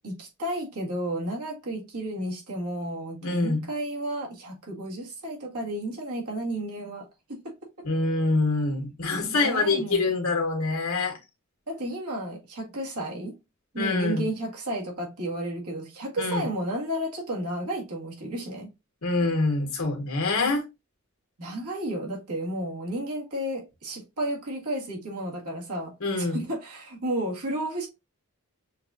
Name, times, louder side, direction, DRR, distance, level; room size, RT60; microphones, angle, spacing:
voice 1, 0.0-7.5 9.3-10.1 11.7-13.3 13.7-18.7 21.4-27.9, right 1 dB, 90° right, 1.7 m, -32 dB
voice 2, 3.2-3.6 7.8-11.2 13.7-14.3 16.2-16.5 19.0-20.6 26.0-26.4, left 3 dB, 75° left, 1.3 m, -25 dB
6.4 x 2.4 x 2.5 m
head